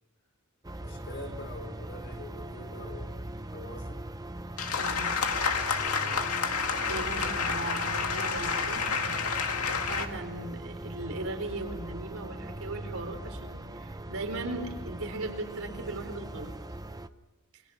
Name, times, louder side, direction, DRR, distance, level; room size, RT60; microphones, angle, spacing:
sound 1, 0.6-17.1, right 1 dB, 15° right, 0.8 m, -40 dB
voice 1, 0.8-3.2 3.5-4.0 5.8-6.0, left 1 dB, 55° left, 4 dB, 5.3 m, -44 dB
sound 2, 4.6-10.1, left 5 dB, 85° left, 2.1 m, -29 dB
voice 2, 4.8-5.1 6.9-16.5 17.5-17.6, right 2 dB, 70° right, 4 dB, 4.4 m, -38 dB
28.5 x 25.5 x 5.9 m, 1.2 s
head